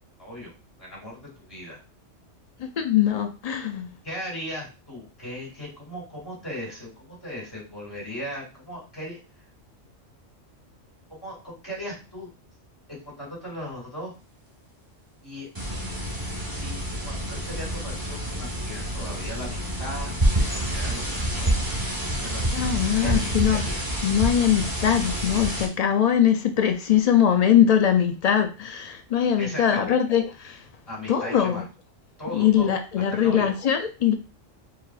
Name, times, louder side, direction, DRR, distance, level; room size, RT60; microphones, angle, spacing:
voice 1, 0.2-0.5 0.8-1.8 4.0-9.2 11.1-12.3 12.9-14.1 15.2-15.5 16.5-16.8 17.0-21.6 22.2-22.5 23.0-23.8 29.4-30.0 30.9-31.6 32.2-32.8 33.1-33.5, equal, 20° left, 2.5 m, -37 dB
voice 2, 2.6-3.9 22.5-23.6 24.0-30.6 31.1-31.6 32.3-34.1, left 9 dB, 75° left, 0.3 m, -22 dB
sound 1, 15.6-25.7, right 1 dB, 20° right, 1.1 m, -28 dB
4.7 x 4.1 x 2.4 m
omnidirectional pair, 1.3 m